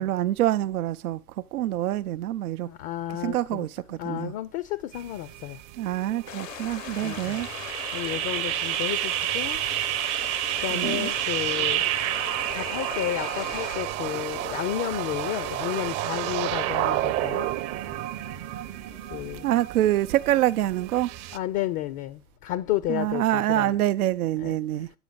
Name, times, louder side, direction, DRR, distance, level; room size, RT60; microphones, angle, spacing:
voice 1, 0.0-2.7 3.1-4.3 5.8-7.5 10.7-11.1 19.4-21.1 22.9-24.9, right 13 dB, 75° right, 0.6 m, -26 dB
voice 2, 2.6-3.7 4.0-5.6 6.9-7.4 7.9-9.6 10.6-11.9 12.5-17.5 19.1-19.5 21.3-23.7 24.4-24.6, left 14 dB, 35° left, 0.5 m, -32 dB
sound 1, 4.9-21.4, right 15 dB, 35° right, 0.7 m, -30 dB
sound 2, 6.3-13.8, left 14 dB, 60° left, 0.8 m, -39 dB
sound 3, 10.5-19.7, left 10 dB, 80° left, 1.0 m, -48 dB
8.8 x 5.0 x 7.8 m
hypercardioid pair, 110°, 44 cm